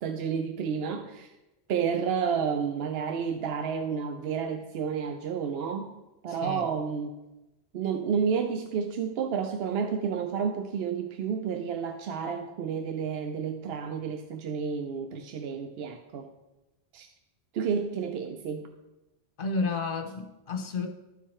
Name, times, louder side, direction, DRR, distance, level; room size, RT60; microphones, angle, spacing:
voice 1, 0.0-1.3 1.7-5.9 6.2-7.2 7.7-16.3 16.9-17.1 17.5-18.7, right 6 dB, 75° right, 6 dB, 0.8 m, -30 dB
voice 2, 6.3-6.6 19.4-20.9, left 3 dB, 60° left, 5 dB, 1.1 m, -31 dB
13.0 x 4.6 x 4.4 m, 1.0 s
omnidirectional pair, 1.1 m